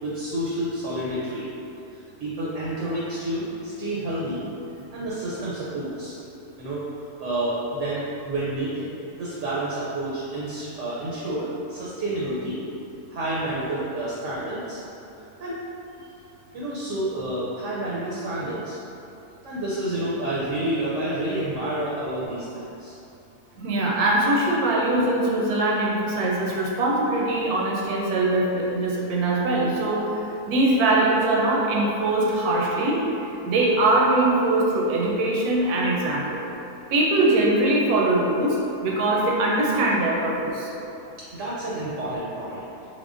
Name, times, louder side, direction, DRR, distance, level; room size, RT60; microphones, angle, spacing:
voice 1, 0.0-1.5 1.9-4.5 4.9-6.1 6.6-6.9 7.2-8.9 9.2-12.6 13.1-14.8 15.4-15.6 16.5-18.8 19.4-23.0 41.3-42.6, right 1 dB, 65° right, -7 dB, 0.8 m, -29 dB
voice 2, 23.6-30.2 30.5-33.0 33.5-36.5 36.9-38.6 38.8-40.7, right 2 dB, 80° right, -3 dB, 1.1 m, -22 dB
3.6 x 3.2 x 2.5 m, 2.8 s
omnidirectional pair, 1.6 m